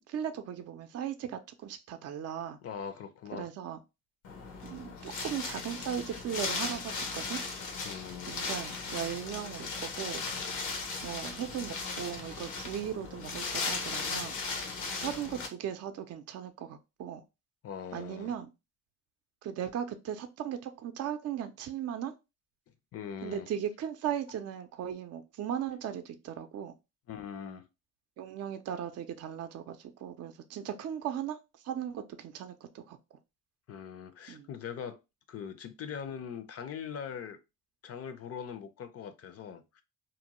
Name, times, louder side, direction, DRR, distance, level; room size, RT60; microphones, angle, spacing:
voice 1, 0.0-2.6 3.3-3.8 4.6-7.4 8.3-10.2 11.0-14.4 15.0-17.2 17.9-18.5 19.4-22.1 23.2-26.7 28.2-31.4 31.6-33.0 34.3-34.5, right 9 dB, 55° right, 0.4 m, -37 dB
voice 2, 2.6-3.5 7.8-8.4 15.0-15.1 17.6-18.4 22.9-23.5 27.1-27.7 33.7-35.0 35.3-37.4 37.8-39.8, left 7 dB, 55° left, 0.5 m, -41 dB
Wind, 4.2-15.5, left 4 dB, 85° left, 0.8 m, -37 dB
2.6 x 2.1 x 2.9 m
cardioid pair, 90°, 30 cm